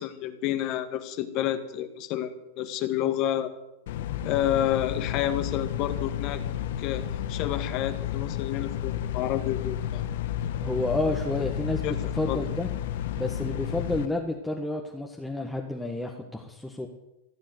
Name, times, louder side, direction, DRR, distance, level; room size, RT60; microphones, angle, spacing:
voice 1, 0.0-3.5 4.2-6.4 6.8-7.0 7.3-10.0 11.8-11.9 12.3-12.4, left 11 dB, 50° left, 8 dB, 1.7 m, -29 dB
sound 1, 3.9-14.1, left 10 dB, 70° left, 1.1 m, -32 dB
voice 2, 10.6-12.7 13.1-16.9, left 2 dB, 5° left, 0 dB, 1.7 m, -30 dB
16.5 x 7.5 x 9.5 m, 0.92 s
hypercardioid pair, 110°, 0 cm